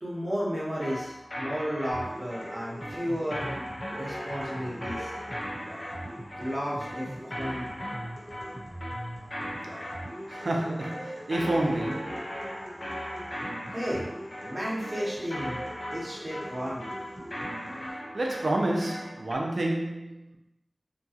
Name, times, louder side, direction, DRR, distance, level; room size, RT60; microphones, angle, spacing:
voice 1, 0.0-3.5 3.9-5.1 6.4-7.1 7.4-7.7 13.7-14.1 14.4-15.6 15.9-16.9, equal, 45° right, 0.9 m, -33 dB
sound 1, 0.8-19.3, equal, 50° left, 0.6 m, -38 dB
sound 2, 1.9-17.9, right 1 dB, 5° left, 1.0 m, -42 dB
voice 2, 10.3-12.3 18.1-20.4, right 1 dB, 80° right, 0.5 m, -29 dB
2.8 x 2.3 x 2.7 m
wide cardioid pair, 45°, 0 cm